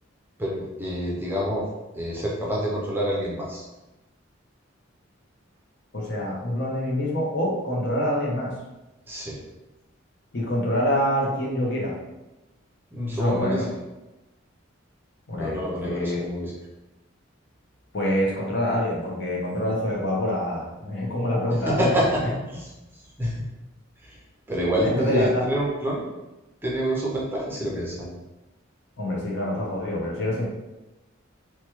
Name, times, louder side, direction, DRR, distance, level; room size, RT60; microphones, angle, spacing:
voice 1, 0.4-1.6 1.9-3.7 9.1-9.4 12.9-13.7 15.4-16.5 21.7-22.2 22.5-22.7 23.2-23.4 24.1-24.2 24.5-26.1 26.6-28.1, equal, 10° right, -5 dB, 0.5 m, -27 dB
voice 2, 5.9-8.5 10.3-11.9 13.1-13.7 15.3-16.2 17.9-22.0 24.7-25.4 29.0-30.4, equal, 60° left, -3 dB, 0.8 m, -26 dB
3.0 x 2.2 x 2.9 m, 1.0 s
head